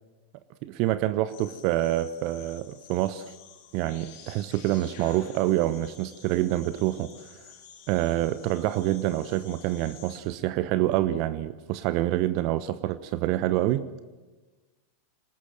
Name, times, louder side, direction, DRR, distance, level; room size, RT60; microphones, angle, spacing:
voice 1, 0.6-3.2 3.7-7.1 7.9-13.8, right 14 dB, 45° right, 0.9 m, -26 dB
sound 1, 1.3-10.2, left 8 dB, 50° left, 4.0 m, -51 dB
25.0 x 20.0 x 7.7 m
figure-of-eight pair, 90°, 0 cm